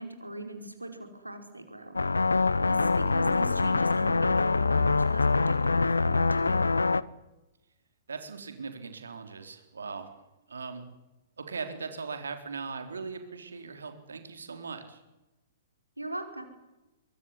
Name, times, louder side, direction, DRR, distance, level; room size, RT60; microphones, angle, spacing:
voice 1, 0.0-2.0 2.6-6.8 16.0-16.4, right 1 dB, 85° right, 5 dB, 5.0 m, -39 dB
sound 1, 2.0-7.0, left 3 dB, 75° left, 0.8 m, -24 dB
voice 2, 8.1-10.1 10.5-10.8 11.4-15.0, right 4 dB, 70° right, 7 dB, 4.0 m, -39 dB
24.5 x 22.5 x 10.0 m, 1.0 s
figure-of-eight pair, 110°, 0 cm